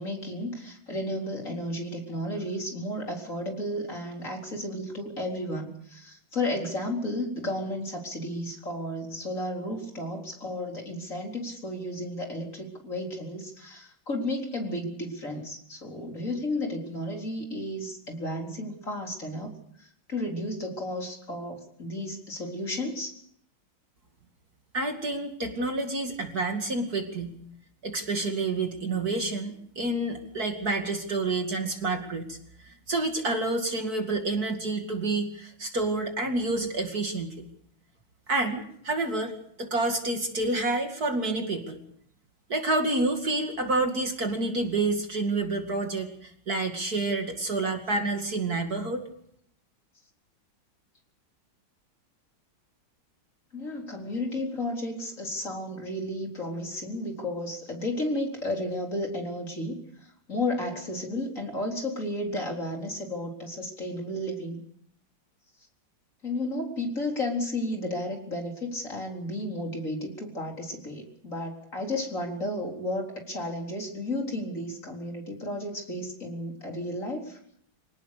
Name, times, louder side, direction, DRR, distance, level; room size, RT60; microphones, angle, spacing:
voice 1, 0.0-19.5 19.8-23.2 53.5-64.6 66.2-77.4, left 1 dB, 35° left, 1 dB, 4.4 m, -33 dB
voice 2, 24.7-27.4 27.8-37.3 38.3-39.3 39.6-41.8 42.5-49.0, right 2 dB, 45° right, 4 dB, 2.8 m, -28 dB
26.0 x 18.5 x 6.7 m, 0.67 s
omnidirectional pair, 2.3 m